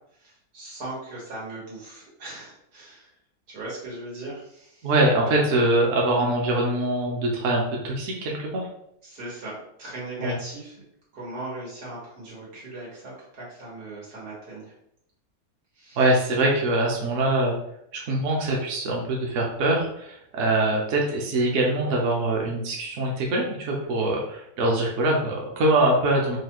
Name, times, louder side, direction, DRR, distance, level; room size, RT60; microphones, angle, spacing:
voice 1, 0.2-3.1 3.5-4.9 9.0-10.8 11.1-14.7 15.8-16.0, right 2 dB, 90° right, -6 dB, 2.2 m, -38 dB
voice 2, 4.8-8.7 10.2-10.3 16.0-17.6 17.9-26.4, right 1 dB, 60° right, -2 dB, 1.1 m, -23 dB
4.7 x 2.3 x 2.9 m, 0.73 s
omnidirectional pair, 1.6 m